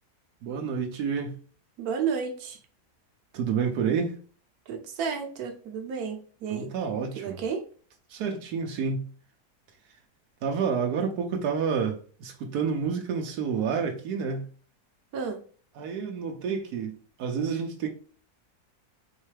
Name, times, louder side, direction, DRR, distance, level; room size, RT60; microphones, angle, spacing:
voice 1, 0.4-1.4 3.3-4.2 6.5-7.4 8.1-9.1 10.4-14.5 15.8-17.9, right 6 dB, 90° right, 1.3 m, -29 dB
voice 2, 1.8-2.6 4.7-6.7 7.1-7.6 15.1-15.4, right 6 dB, 75° right, 1.3 m, -32 dB
4.5 x 3.2 x 3.2 m
omnidirectional pair, 1.6 m